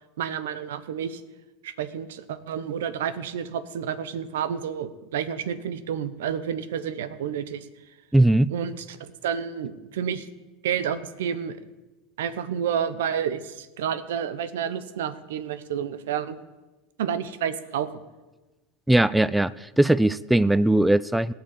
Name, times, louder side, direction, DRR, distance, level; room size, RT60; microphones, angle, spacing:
voice 1, 0.2-1.2 1.6-7.7 8.5-10.3 10.6-11.6 12.2-16.4 17.0-17.9, right 8 dB, 80° right, 14 dB, 0.9 m, -30 dB
voice 2, 8.1-8.5 18.9-21.3, right 1 dB, 5° right, 17 dB, 0.4 m, -20 dB
17.5 x 5.9 x 9.0 m, 1.1 s
hypercardioid pair, 105°, 0 cm